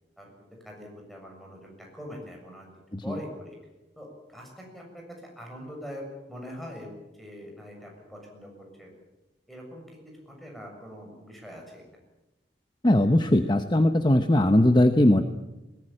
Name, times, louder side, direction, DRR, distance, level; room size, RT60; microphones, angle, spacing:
voice 1, 0.6-2.7 3.0-3.6 4.0-5.0 5.4-6.9 7.2-8.5 8.8-8.9 9.5-9.8 10.3-11.8, equal, ahead, 0 dB, 7.0 m, -42 dB
voice 2, 12.8-15.2, left 1 dB, 25° left, 8 dB, 0.9 m, -20 dB
21.5 x 19.0 x 8.9 m, 1.0 s
head